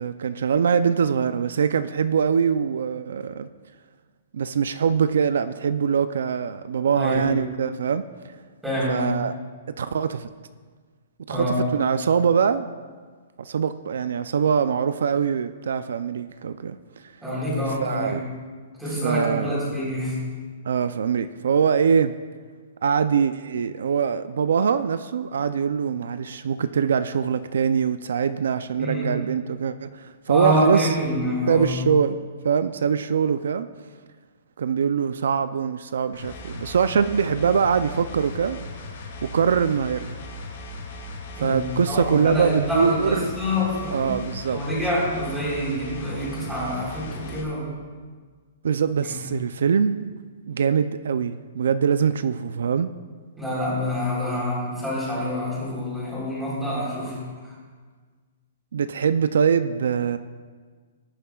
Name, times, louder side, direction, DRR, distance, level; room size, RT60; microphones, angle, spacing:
voice 1, 0.0-3.5 4.3-8.0 8.9-9.4 9.8-10.3 11.3-12.7 13.4-16.8 17.8-18.2 19.0-19.6 20.7-22.1 22.8-31.0 31.5-33.7 34.6-38.6 39.2-40.2 41.4-43.3 43.9-44.6 48.6-50.0 50.5-52.9 58.7-60.2, right 6 dB, 80° right, 12 dB, 0.4 m, -23 dB
voice 2, 7.0-7.3 8.6-9.1 11.3-11.6 17.2-18.2 18.8-20.2 28.8-29.1 30.3-31.8 41.3-44.1 44.5-47.7 49.1-49.2 53.4-57.2, equal, ahead, -8 dB, 3.9 m, -26 dB
sound 1, 36.1-47.4, left 1 dB, 55° left, 2.3 m, -37 dB
19.5 x 10.0 x 2.4 m, 1.5 s
hypercardioid pair, 175°, 0 cm